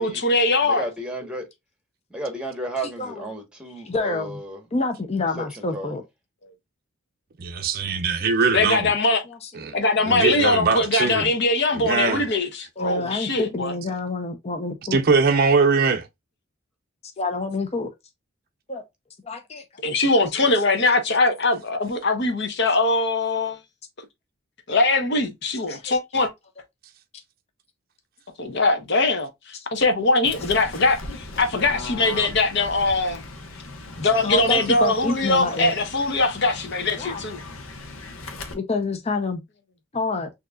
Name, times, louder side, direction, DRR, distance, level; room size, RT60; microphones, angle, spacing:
voice 1, 0.0-0.9 8.5-9.2 9.7-13.7 19.8-23.6 24.7-26.3 28.4-33.2 34.0-37.4, left 2 dB, 55° left, 1.0 m, -21 dB
voice 2, 0.6-1.5 2.1-4.6 5.4-6.0, right 1 dB, 5° right, 1.1 m, -33 dB
voice 3, 3.9-4.4 4.7-6.0 9.3-9.5 12.8-15.0 17.0-17.9 18.7-18.8 19.2-19.6 24.7-24.9 25.7-25.9 26.2-26.3 34.0-35.7 37.0-37.2 38.5-39.4 39.9-40.3, left 3 dB, 30° left, 0.6 m, -28 dB
voice 4, 7.4-8.9 9.6-9.8 10.1-11.3 11.7-12.2 14.9-16.1, right 4 dB, 45° right, 0.5 m, -21 dB
Fowl / Bird, 30.2-38.5, left 2 dB, 85° left, 1.0 m, -38 dB
6.4 x 2.8 x 2.3 m
head